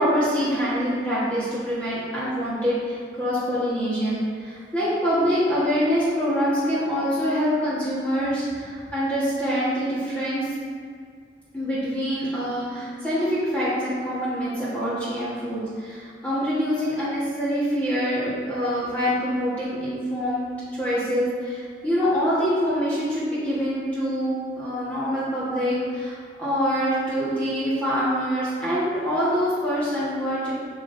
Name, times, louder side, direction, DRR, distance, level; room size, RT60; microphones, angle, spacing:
voice 1, 0.0-10.5 11.5-20.4 20.7-24.3 24.6-30.5, equal, 10° left, -11 dB, 1.4 m, -25 dB
8.1 x 5.2 x 2.7 m, 2.2 s
head